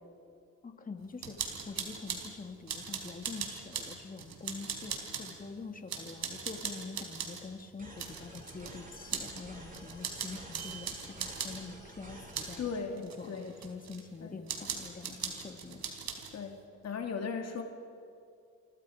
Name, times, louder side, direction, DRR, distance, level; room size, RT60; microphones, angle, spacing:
voice 1, 0.6-12.6 13.0-16.2, left 4 dB, 30° left, 5 dB, 2.4 m, -45 dB
sound 1, 1.2-2.3 2.7-5.4 5.9-7.4 8.0-8.8 9.1-9.4 9.7-11.6 12.3-12.6 13.0-14.0 14.5-16.3, right 6 dB, 65° right, 4.0 m, -39 dB
sound 2, 7.8-12.8, right 1 dB, 30° right, 7.3 m, -50 dB
voice 2, 12.6-13.5 14.2-14.4 16.3-17.6, left 5 dB, 60° left, 3 dB, 2.7 m, -37 dB
29.0 x 24.5 x 5.1 m, 2.4 s
cardioid pair, 90°, 30 cm